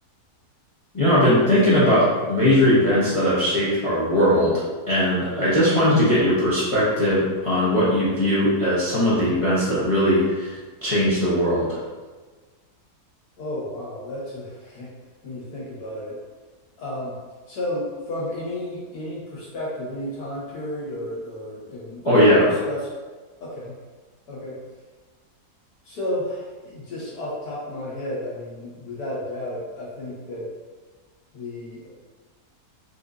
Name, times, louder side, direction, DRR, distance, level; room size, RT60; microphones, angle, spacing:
voice 1, 0.9-4.5 4.9-11.8 22.0-22.5, equal, 45° left, -10 dB, 0.4 m, -19 dB
voice 2, 13.4-14.9 15.2-16.2 16.8-17.2 17.5-22.9 23.4-23.7 24.3-24.5 25.8-30.5 31.3-31.9, left 1 dB, 75° left, -6 dB, 1.6 m, -32 dB
4.3 x 2.6 x 2.4 m, 1.3 s
omnidirectional pair, 1.7 m